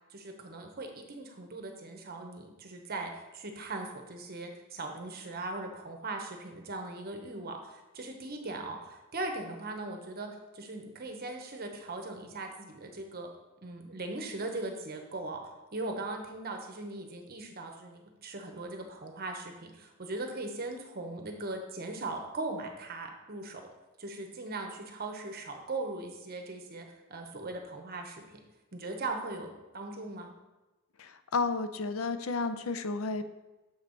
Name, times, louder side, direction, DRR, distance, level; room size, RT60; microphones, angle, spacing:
voice 1, 0.1-10.3 10.5-13.3 13.6-15.4 15.7-23.6 24.0-28.2 28.7-30.3, right 2 dB, 45° right, 4 dB, 0.9 m, -39 dB
voice 2, 31.0-33.3, left 4 dB, 75° left, 10 dB, 0.5 m, -32 dB
7.1 x 5.3 x 3.9 m, 1.1 s
head